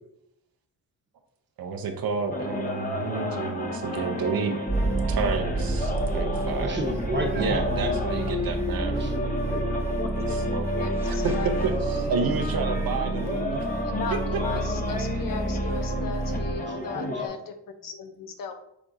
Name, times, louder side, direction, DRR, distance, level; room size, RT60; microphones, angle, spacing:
voice 1, 1.6-4.6 5.1-6.8 7.4-9.0 10.2-11.3 11.6-13.9 14.3-14.4, right 5 dB, 60° right, 5 dB, 0.7 m, -30 dB
sound 1, 2.3-17.3, left 2 dB, 20° left, 0.8 m, -32 dB
sound 2, 4.7-16.6, right 2 dB, 5° right, 1.2 m, -30 dB
voice 2, 6.6-8.0 8.9-10.0 16.7-17.2, right 1 dB, 25° right, 2 dB, 1.0 m, -32 dB
voice 3, 9.8-11.8 13.8-18.5, left 5 dB, 55° left, 7 dB, 0.7 m, -37 dB
5.9 x 3.5 x 2.6 m, 0.79 s
cardioid pair, 80°, 41 cm